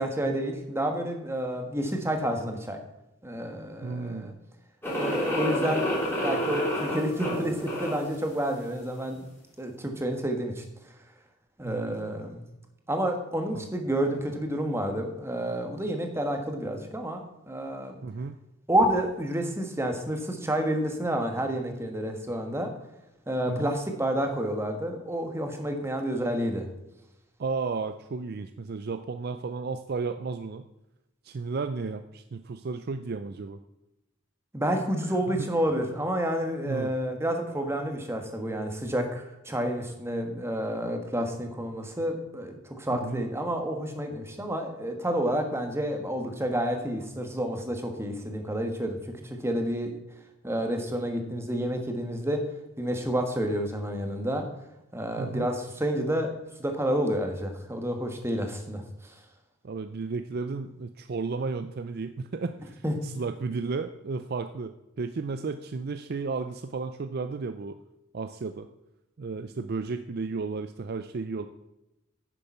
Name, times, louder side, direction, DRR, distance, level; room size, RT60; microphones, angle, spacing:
voice 1, 0.0-2.8 3.2-4.3 4.9-9.3 9.6-10.6 11.6-12.4 12.9-18.0 18.7-22.7 23.3-26.7 34.5-49.0 49.2-50.0 50.4-52.4 52.8-54.5 54.9-56.3 56.6-59.1 62.8-62.9, right 1 dB, 10° right, 4 dB, 1.3 m, -29 dB
voice 2, 3.8-4.4 11.6-12.2 13.5-13.6 18.0-18.4 23.5-23.8 27.4-30.7 31.2-33.6 35.0-35.5 36.6-36.9 42.9-43.2 55.2-55.5 59.6-67.8 68.1-68.7 69.2-71.5, right 4 dB, 50° right, 9 dB, 0.4 m, -33 dB
sound 1, 4.8-8.1, equal, 10° left, 3.1 m, -29 dB
10.0 x 6.9 x 5.5 m, 0.93 s
head